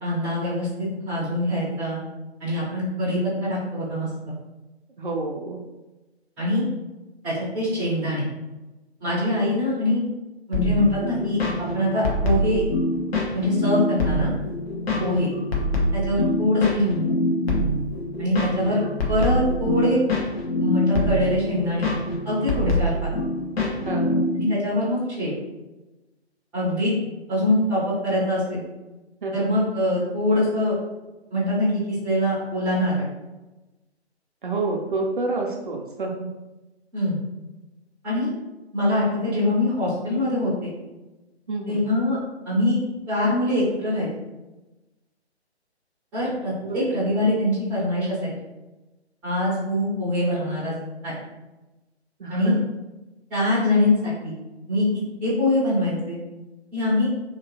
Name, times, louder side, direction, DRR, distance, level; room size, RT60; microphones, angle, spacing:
voice 1, 0.0-2.0 2.4-4.1 6.4-6.7 7.2-8.3 9.0-10.0 10.5-11.4 11.7-12.6 13.3-14.3 15.0-15.3 15.9-17.1 18.2-18.8 19.1-20.0 20.6-21.9 22.2-22.9 24.4-25.3 26.5-26.9 27.3-28.6 29.3-30.7 31.3-33.0 36.9-37.2 38.0-38.3 38.7-40.7 41.7-42.2 42.4-42.8 43.1-44.1 46.1-48.3 49.2-50.7 51.0-51.2 52.3-52.5 53.3-54.3 54.7-54.8 55.2-56.2 56.7-57.1, left 1 dB, 5° right, -11 dB, 0.5 m, -23 dB
voice 2, 5.0-5.6 15.0-15.2 23.8-24.2 29.2-29.3 34.4-36.3 41.5-41.9 46.6-47.3 52.2-52.5, right 3 dB, 50° right, 0 dB, 0.5 m, -29 dB
sound 1, 10.5-24.4, left 1 dB, 60° left, 0.9 m, -25 dB
2.9 x 2.9 x 2.8 m, 1.1 s
figure-of-eight pair, 135°, 33 cm